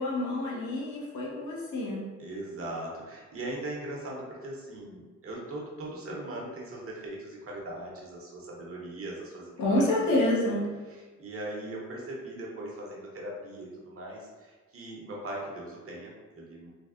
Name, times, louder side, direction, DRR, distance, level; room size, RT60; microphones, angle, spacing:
voice 1, 0.0-2.0 9.6-10.7, left 1 dB, 70° left, -4 dB, 0.9 m, -28 dB
voice 2, 2.2-9.9 10.9-16.7, right 1 dB, 45° right, -3 dB, 0.8 m, -39 dB
3.3 x 2.1 x 2.4 m, 1.3 s
cardioid pair, 90°, 30 cm